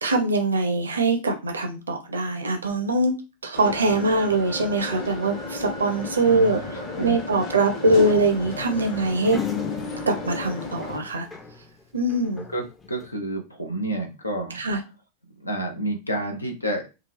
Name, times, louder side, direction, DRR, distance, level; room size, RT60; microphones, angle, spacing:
voice 1, 0.0-3.1 3.4-6.6 7.0-9.4 10.1-11.3 11.9-12.4 14.6-14.8, right 2 dB, 75° right, 5 dB, 0.5 m, -22 dB
sound 1, 3.5-11.0, left 2 dB, 40° left, 0.8 m, -34 dB
voice 2, 6.2-6.7 7.0-7.2 12.5-14.6 15.4-16.8, right 1 dB, 80° left, 4 dB, 0.7 m, -29 dB
sound 2, 8.0-11.7 12.0-13.1, left 7 dB, 15° left, 0.5 m, -36 dB
3.7 x 2.3 x 3.1 m, 0.28 s
figure-of-eight pair, 90°, 0 cm